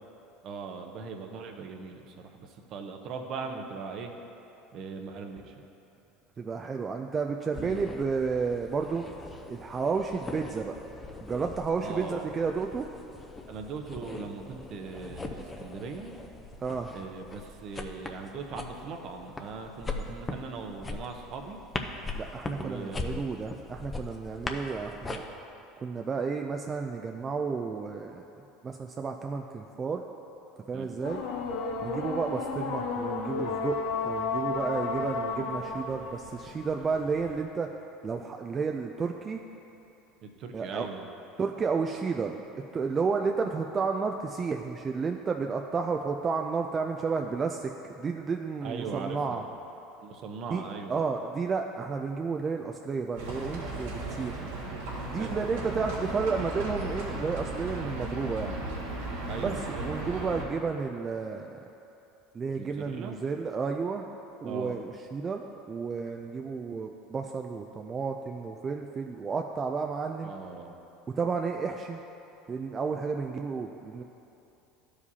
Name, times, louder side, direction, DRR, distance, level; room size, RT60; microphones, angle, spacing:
voice 1, 0.4-4.1 4.7-5.5 7.6-7.9 11.8-12.4 13.5-16.2 16.9-21.6 22.5-23.3 30.7-31.0 40.2-41.1 48.6-49.5 50.0-51.0 55.1-55.4 59.3-59.9 62.6-63.2 64.4-64.8 70.2-70.8, right 4 dB, 55° right, 4 dB, 0.7 m, -40 dB
voice 2, 6.4-9.0 9.5-10.7 11.2-12.9 16.6-16.9 22.1-25.2 25.8-28.2 28.6-30.0 30.7-31.2 31.8-33.8 34.0-37.7 38.0-39.4 40.5-40.9 41.4-42.4 42.7-49.4 50.5-50.6 50.9-54.4 55.1-58.6 59.4-59.6 59.8-61.6 62.3-64.0 64.4-65.4 65.7-70.3 71.2-72.0 72.5-74.0, right 5 dB, 30° right, 3 dB, 0.4 m, -31 dB
sound 1, 7.5-25.2, left 3 dB, 20° left, 0.6 m, -41 dB
sound 2, 31.0-37.4, left 4 dB, 70° left, 0.7 m, -33 dB
Livestock farm animals working animals, 53.2-60.4, right 2 dB, 85° right, 1.6 m, -36 dB
12.0 x 4.9 x 2.8 m, 2.9 s
supercardioid pair, 95°, 0 cm